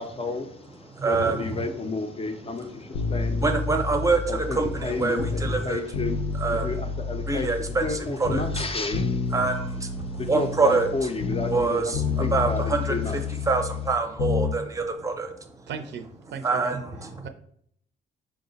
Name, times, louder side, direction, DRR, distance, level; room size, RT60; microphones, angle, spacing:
voice 1, 0.0-3.5 4.3-9.4 10.0-13.5, left 3 dB, 30° left, 6 dB, 0.5 m, -32 dB
voice 2, 0.9-1.4 3.4-5.8 6.4-6.7 7.3-8.6 9.3-10.9 11.5-12.9 13.5-15.3 16.4-17.3, right 3 dB, 15° right, 5 dB, 0.6 m, -25 dB
sound 1, 2.9-5.6 5.9-8.0 8.2-11.7 11.9-14.6 14.8-14.9, left 4 dB, 85° left, 0.6 m, -29 dB
voice 3, 15.7-16.8 17.2-17.3, right 6 dB, 65° right, 8 dB, 0.5 m, -37 dB
4.7 x 2.1 x 3.8 m, 0.68 s
cardioid pair, 90°, 20 cm